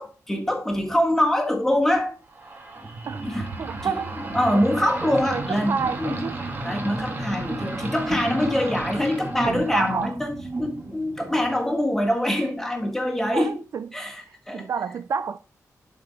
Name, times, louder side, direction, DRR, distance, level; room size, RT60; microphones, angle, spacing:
voice 1, 0.0-2.2 3.2-3.5 3.8-4.0 4.3-6.3 6.6-13.6 13.9-14.7, left 1 dB, 5° left, 1.5 m, -24 dB
sound 1, 2.3-11.7, right 2 dB, 30° right, 1.5 m, -33 dB
voice 2, 3.6-4.1 4.5-4.9 5.3-6.4 9.4-10.2 13.3-13.9 14.5-15.4, right 6 dB, 55° right, 0.4 m, -29 dB
11.0 x 4.3 x 4.2 m
wide cardioid pair, 155°, 6 cm